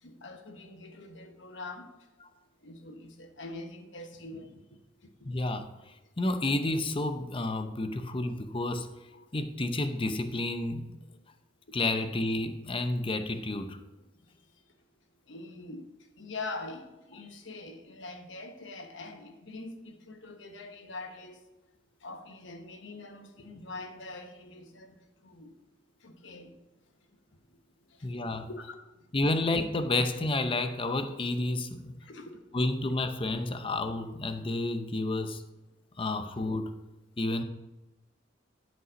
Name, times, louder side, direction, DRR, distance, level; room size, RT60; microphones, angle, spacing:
voice 1, 0.0-1.9 2.6-5.1 9.1-9.2 15.3-15.8 16.2-21.4 22.0-25.0 25.2-25.5 26.0-26.6 27.9-28.1 28.5-28.7 32.0-32.3, left 2 dB, 70° left, 1.1 m, -44 dB
voice 2, 5.2-5.7 6.2-8.9 9.3-10.9 11.7-13.8 28.0-28.5 29.1-31.9 32.5-35.4 36.0-36.7 37.2-37.4, left 2 dB, 25° left, 0.6 m, -30 dB
11.0 x 5.4 x 5.0 m
head